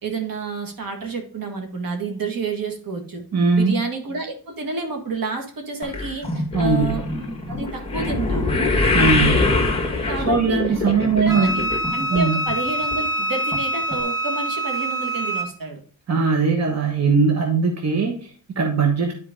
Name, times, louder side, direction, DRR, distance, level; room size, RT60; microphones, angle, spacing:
voice 1, 0.0-3.2 3.5-7.0 7.5-8.6 10.1-10.6 11.2-15.8, right 4 dB, 65° right, 3 dB, 1.8 m, -29 dB
voice 2, 3.3-3.8 6.5-7.0 8.9-9.4 10.3-11.6 12.1-12.4 16.1-19.1, right 4 dB, 45° right, 2 dB, 1.2 m, -20 dB
sound 1, 5.8-12.2 12.5-13.0 13.5-13.6 13.9-14.0, left 3 dB, 15° left, 1.5 m, -23 dB
Wind instrument woodwind instrument, 11.3-15.5, right 1 dB, 10° right, 2.2 m, -25 dB
9.8 x 4.6 x 3.7 m, 0.42 s
wide cardioid pair, 105°, 37 cm